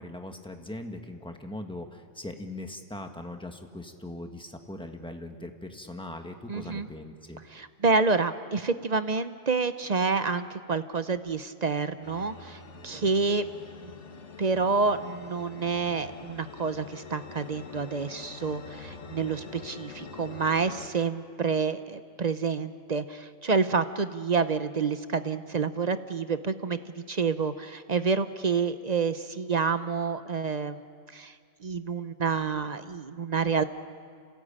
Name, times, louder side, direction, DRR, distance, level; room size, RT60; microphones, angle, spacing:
voice 1, 0.0-7.4, left 1 dB, 5° left, 4 dB, 1.4 m, -40 dB
voice 2, 6.5-6.9 7.5-13.4 13.8-13.9 14.4-26.8 27.1-30.8 31.1-31.3 31.6-33.6, right 4 dB, 40° right, 11 dB, 0.7 m, -28 dB
sound 1, 12.0-20.9, left 4 dB, 70° left, 1.6 m, -45 dB
27.5 x 17.5 x 8.9 m, 2.2 s
omnidirectional pair, 1.3 m